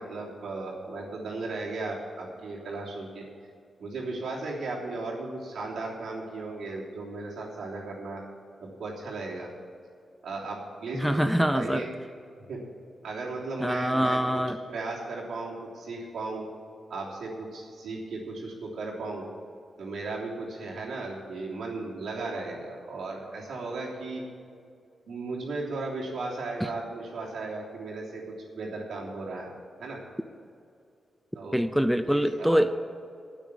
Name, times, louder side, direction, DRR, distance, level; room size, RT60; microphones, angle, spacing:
voice 1, 0.0-3.3 3.8-8.2 8.6-9.5 10.2-11.9 12.5-12.6 13.0-14.4 14.7-16.5 16.9-19.3 19.8-24.2 25.1-29.5 29.8-30.0 31.3-31.6 32.0-32.6, right 3 dB, 80° right, -3 dB, 3.2 m, -36 dB
voice 2, 10.9-11.9 13.6-14.6 26.6-26.7 31.5-32.7, equal, ahead, 10 dB, 0.5 m, -24 dB
9.1 x 9.0 x 9.8 m, 2.4 s
cardioid pair, 80°, 0 cm